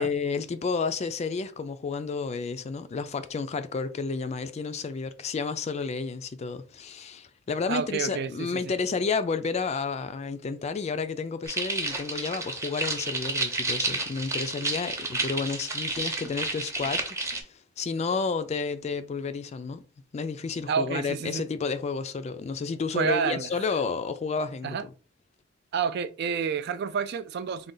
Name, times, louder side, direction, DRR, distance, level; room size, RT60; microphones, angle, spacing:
voice 1, 0.0-19.8 20.1-24.9, left 4 dB, 35° left, 0.3 m, -31 dB
voice 2, 7.7-8.7 20.7-21.5 22.9-23.5 24.6-24.9 25.7-27.7, right 6 dB, 55° right, 0.3 m, -29 dB
sound 1, 11.4-17.4, right 2 dB, 15° right, 0.7 m, -31 dB
3.8 x 2.3 x 3.8 m
head